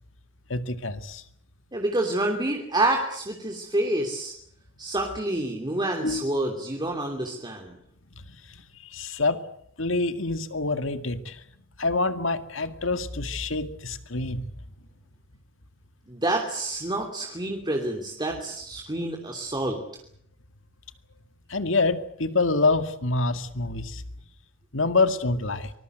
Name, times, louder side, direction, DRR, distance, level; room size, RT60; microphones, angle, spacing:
voice 1, 0.5-1.2 6.0-6.2 8.2-8.3 8.9-9.4 9.8-11.4 11.8-14.4 21.5-24.0 24.7-25.7, left 3 dB, 70° left, 10 dB, 2.1 m, -26 dB
voice 2, 1.7-4.3 4.8-7.8 16.1-19.8, right 1 dB, 20° right, 2 dB, 2.9 m, -28 dB
24.5 x 21.0 x 8.0 m, 0.70 s
head